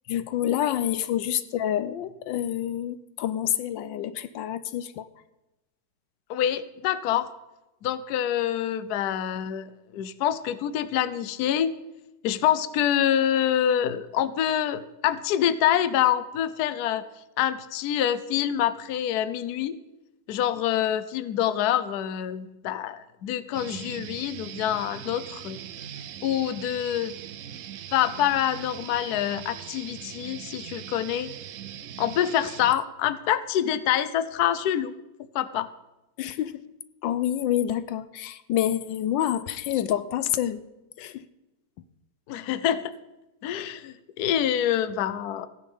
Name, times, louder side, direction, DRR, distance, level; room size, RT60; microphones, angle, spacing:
voice 1, 0.1-5.1 36.2-36.6 37.0-40.6 41.0-41.3, left 11 dB, 85° left, 14 dB, 1.4 m, -27 dB
voice 2, 6.3-7.3 7.8-11.7 12.2-17.0 17.4-19.8 20.3-25.6 26.2-27.1 27.9-31.3 32.0-34.9 35.3-35.7 42.3-42.9 43.4-45.5, left 10 dB, 65° left, 14 dB, 1.1 m, -26 dB
sound 1, 23.5-32.7, right 10 dB, 70° right, 0.7 m, -40 dB
15.0 x 10.0 x 5.4 m, 0.98 s
omnidirectional pair, 2.0 m